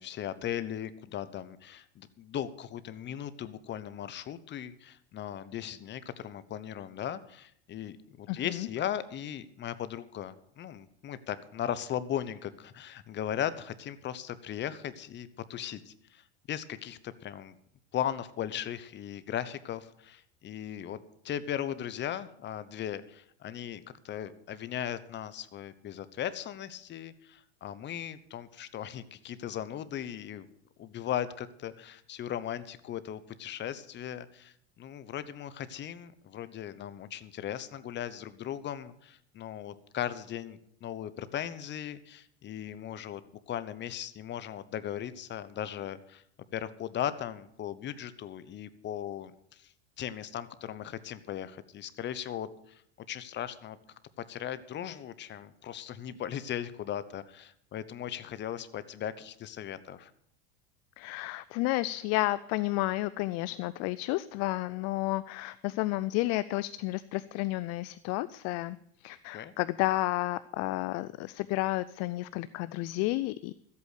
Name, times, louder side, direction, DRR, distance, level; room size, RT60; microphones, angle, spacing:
voice 1, 0.0-17.6 17.9-30.5 30.8-43.2 43.5-46.2 46.5-52.8 53.1-53.8 54.3-60.1 69.3-69.5, left 10 dB, 35° left, 14 dB, 0.9 m, -38 dB
voice 2, 8.3-8.7 61.0-68.8 69.0-73.5, left 18 dB, 55° left, 16 dB, 0.5 m, -31 dB
13.5 x 8.4 x 6.6 m, 0.69 s
supercardioid pair, 110°, 32 cm